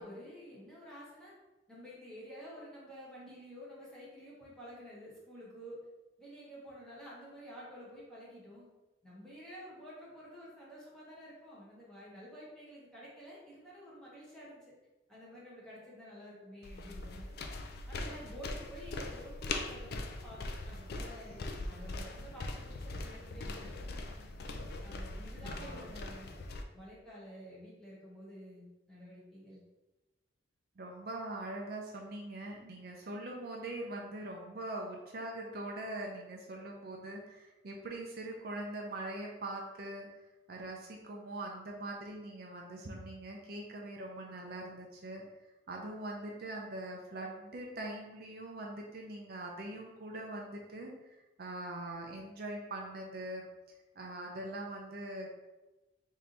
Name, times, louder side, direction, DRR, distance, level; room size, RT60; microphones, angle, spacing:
voice 1, 0.0-1.3 1.7-5.8 6.2-8.7 9.0-14.7 15.1-17.3 17.9-24.0 24.8-26.3 26.7-29.6, equal, 5° left, -8 dB, 1.1 m, -50 dB
sound 1, 16.6-26.6, left 2 dB, 55° left, 0.3 m, -41 dB
voice 2, 25.4-25.8 30.8-40.1 40.5-45.2 45.7-53.5 54.0-55.3, right 1 dB, 50° right, 0 dB, 0.5 m, -42 dB
3.4 x 2.7 x 3.9 m, 1.1 s
head